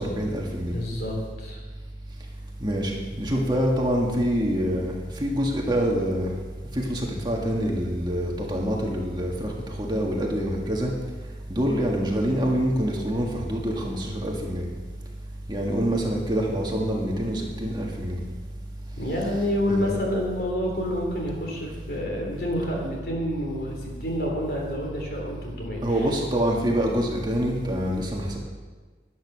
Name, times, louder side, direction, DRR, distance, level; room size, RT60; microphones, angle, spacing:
voice 1, 0.0-0.8 2.6-2.9 3.2-6.3 6.7-10.9 11.5-14.7 15.5-18.2 19.7-20.0 25.8-28.4, equal, 25° right, -1 dB, 1.7 m, -26 dB
voice 2, 0.7-1.6 19.0-26.1, equal, 60° left, -1 dB, 3.6 m, -28 dB
12.0 x 10.5 x 6.3 m, 1.4 s
head